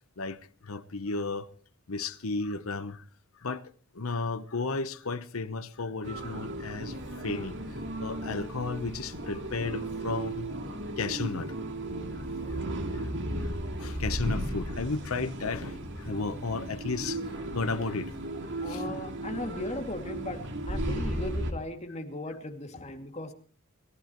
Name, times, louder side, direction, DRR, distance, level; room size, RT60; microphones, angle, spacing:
voice 1, 0.6-1.5 1.9-3.0 3.4-6.9 7.2-7.6 8.0-10.5 11.0-11.5 12.9-18.1 18.7-18.8, left 3 dB, 85° left, 1.0 m, -34 dB
sound 1, 6.0-21.5, right 1 dB, 60° right, 2.7 m, -35 dB
voice 2, 18.6-20.4 20.7-23.3, left 1 dB, 30° left, 2.5 m, -37 dB
28.5 x 14.5 x 3.1 m
head